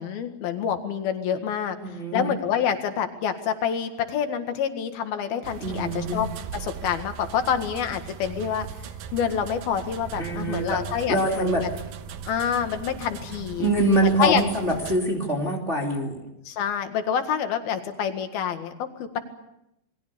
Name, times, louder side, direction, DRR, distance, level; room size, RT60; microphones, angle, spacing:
voice 1, 0.0-1.8 2.1-6.3 6.6-8.7 9.1-11.7 12.3-13.7 14.2-14.4 16.5-19.2, left 8 dB, 85° left, 7 dB, 3.7 m, -27 dB
voice 2, 1.8-2.3 5.6-6.2 10.2-10.8 11.1-11.6 13.6-16.2, right 1 dB, 20° right, 0 dB, 2.8 m, -24 dB
sound 1, 5.4-15.0, right 8 dB, 75° right, 2.8 m, -38 dB
28.5 x 21.5 x 6.9 m, 0.85 s
omnidirectional pair, 4.2 m